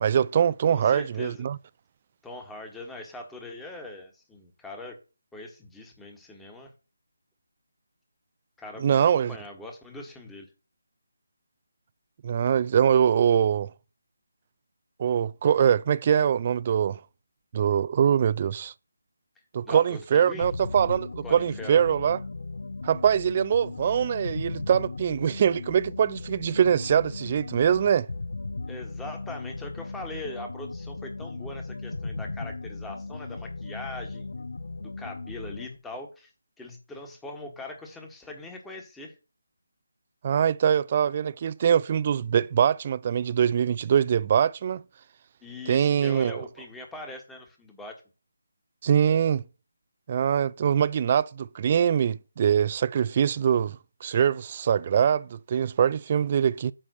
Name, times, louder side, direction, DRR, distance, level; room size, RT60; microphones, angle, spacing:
voice 1, 0.0-1.6 8.8-9.4 12.2-13.7 15.0-17.0 17.5-18.7 19.5-22.2 22.8-28.1 40.2-44.8 45.7-46.4 48.8-49.4 50.1-56.7, right 8 dB, 35° right, 0.4 m, -23 dB
voice 2, 0.7-1.4 2.2-5.0 5.3-6.7 8.6-10.5 19.6-20.5 21.2-21.8 28.7-34.3 34.8-36.3 36.6-39.1 45.4-48.0, left 2 dB, 5° left, 1.4 m, -41 dB
sound 1, 20.4-35.8, left 3 dB, 70° left, 0.8 m, -37 dB
8.9 x 3.3 x 6.6 m
figure-of-eight pair, 155°, 0 cm